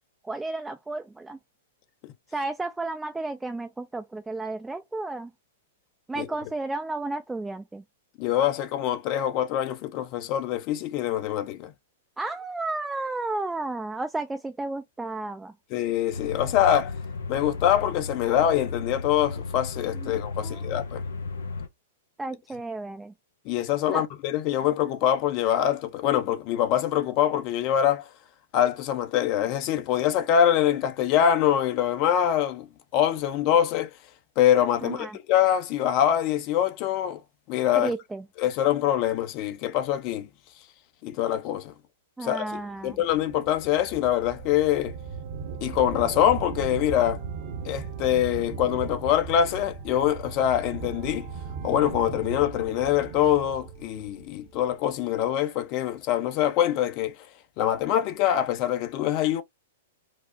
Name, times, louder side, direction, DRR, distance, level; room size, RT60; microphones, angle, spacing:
voice 1, 0.2-1.4 2.3-5.3 6.1-7.8 12.2-15.5 20.0-20.8 22.2-23.1 23.9-24.0 34.8-35.2 37.7-38.2 42.2-43.0, right 2 dB, 10° right, 0.4 m, -33 dB
voice 2, 8.2-11.7 15.7-16.9 17.3-21.0 23.4-28.1 28.5-32.7 32.9-33.9 34.4-37.2 37.5-37.9 38.4-40.3 41.0-41.7 42.2-44.9 45.6-47.2 47.6-51.3 51.6-57.2 57.6-59.4, left 10 dB, 45° left, 0.8 m, -24 dB
sound 1, 16.1-21.7, left 4 dB, 80° left, 0.6 m, -34 dB
sound 2, 42.9-54.9, right 5 dB, 50° right, 1.0 m, -37 dB
4.8 x 2.1 x 2.6 m
hypercardioid pair, 110°, 0 cm